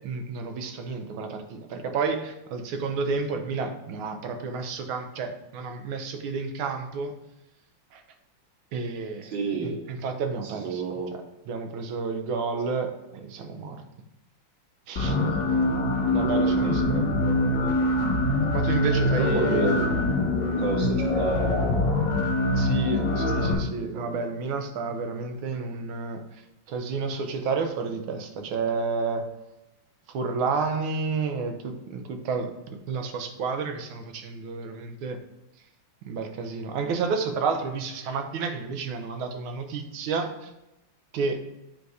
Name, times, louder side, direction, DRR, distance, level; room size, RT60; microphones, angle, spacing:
voice 1, 0.0-7.1 7.9-8.0 8.7-9.3 9.6-10.8 11.5-13.8 14.9-15.2 16.1-17.1 18.5-19.7 22.6-26.2 26.7-29.3 30.1-32.5 32.9-35.2 36.0-40.5 41.1-41.4, right 4 dB, 90° right, 6 dB, 1.6 m, -30 dB
voice 2, 9.3-9.8 10.6-11.1 15.1-17.9 19.2-19.9 20.4-22.1 22.8-23.0 23.9-24.2, right 3 dB, 70° right, 1 dB, 1.7 m, -32 dB
sound 1, 15.0-23.5, left 1 dB, 45° left, 1.4 m, -24 dB
8.0 x 2.7 x 4.7 m, 0.93 s
omnidirectional pair, 2.2 m